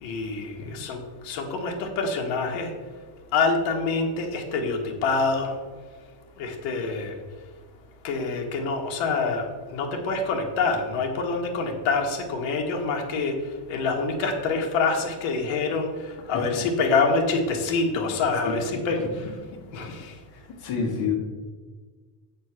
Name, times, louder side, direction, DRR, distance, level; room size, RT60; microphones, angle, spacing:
voice 1, 0.0-2.7 3.3-5.5 6.4-7.1 8.0-9.4 9.7-13.4 13.7-15.9 16.3-19.0 19.7-20.1, left 4 dB, 65° left, 2 dB, 1.7 m, -26 dB
voice 2, 16.3-16.7 18.4-19.1 19.7-19.8 20.3-21.2, left 5 dB, 45° left, -2 dB, 2.0 m, -30 dB
8.6 x 4.3 x 6.1 m, 1.4 s
cardioid pair, 175°, 50 cm